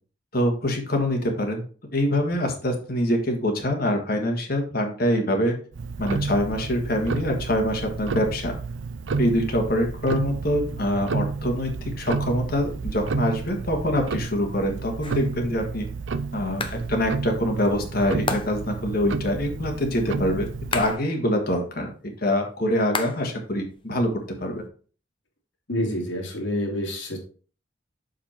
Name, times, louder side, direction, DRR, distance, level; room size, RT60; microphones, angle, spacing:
voice 1, 0.3-1.6 1.9-5.6 6.0-8.5 9.2-15.9 16.3-21.9 22.2-24.1 24.4-24.6, equal, 55° left, 3 dB, 1.7 m, -25 dB
Tick-tock, 5.7-21.0, right 4 dB, 80° right, 0.5 m, -31 dB
sound 1, 15.0-15.4 16.6-16.9 18.3-18.8 20.7-21.2 22.9-23.4 23.7-24.7, left 4 dB, 25° left, 0.8 m, -32 dB
voice 2, 25.7-27.2, left 1 dB, 80° left, 0 dB, 2.6 m, -28 dB
6.7 x 5.2 x 4.4 m, 0.40 s
head